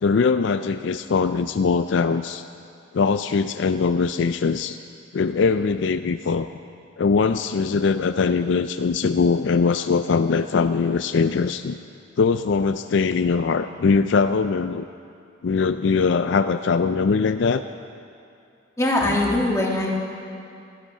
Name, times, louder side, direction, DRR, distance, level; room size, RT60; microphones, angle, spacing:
voice 1, 0.0-2.4 2.9-4.8 5.1-6.5 7.0-11.8 12.2-14.9 15.4-17.6, left 5 dB, 65° left, 10 dB, 0.4 m, -21 dB
voice 2, 18.8-19.9, left 1 dB, 15° left, -2 dB, 1.7 m, -21 dB
17.0 x 13.0 x 5.5 m, 2.5 s
head